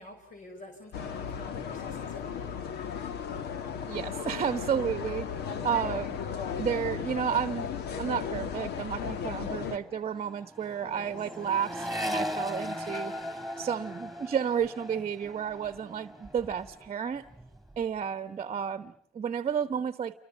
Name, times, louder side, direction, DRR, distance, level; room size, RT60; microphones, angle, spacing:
voice 1, 0.0-2.6 10.8-11.1, left 2 dB, 50° left, 5.6 m, -49 dB
sound 1, 0.9-9.8, left 7 dB, 75° left, 2.0 m, -35 dB
voice 2, 3.9-6.2 6.6-7.7 8.0-13.1 13.6-17.3 17.8-20.2, right 8 dB, 40° right, 1.1 m, -32 dB
Accelerating revving vroom, 9.4-16.9 17.2-17.8, left 1 dB, ahead, 4.8 m, -38 dB
Guitar, 10.8-17.2, left 4 dB, 25° left, 6.0 m, -56 dB
28.5 x 24.5 x 7.3 m
cardioid pair, 110°, 17 cm